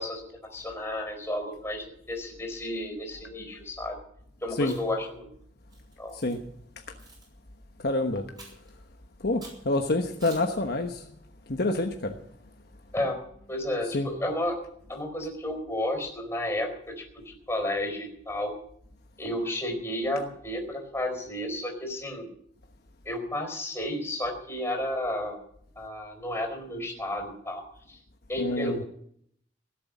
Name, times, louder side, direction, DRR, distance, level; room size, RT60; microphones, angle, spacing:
voice 1, 0.0-4.0 4.4-5.3 6.0-6.2 12.9-13.2 13.5-14.6 14.9-18.5 19.2-22.3 23.0-25.4 25.8-28.0 28.3-28.8, left 1 dB, 15° left, 3 dB, 4.4 m, -32 dB
Chewing mastication, 4.6-5.0 5.7-6.4 7.0-7.3 8.4-8.7 9.4-9.6 10.2-10.6, right 2 dB, 25° right, 6.2 m, -48 dB
voice 2, 7.8-8.5 9.2-11.0 11.5-12.1 13.9-14.1 28.4-28.8, left 2 dB, 60° left, 4 dB, 1.2 m, -27 dB
17.5 x 8.0 x 9.3 m, 0.68 s
head